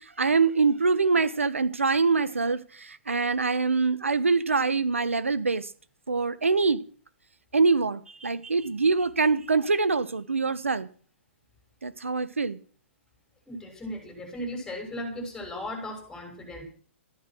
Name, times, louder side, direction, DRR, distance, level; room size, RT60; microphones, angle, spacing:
voice 1, 0.0-5.7 6.1-6.8 7.5-10.9 11.8-12.6, right 4 dB, 85° right, 1.4 m, -24 dB
voice 2, 13.5-16.6, left 1 dB, 10° left, 6.7 m, -36 dB
14.0 x 12.0 x 6.3 m
hypercardioid pair, 125°, 7 cm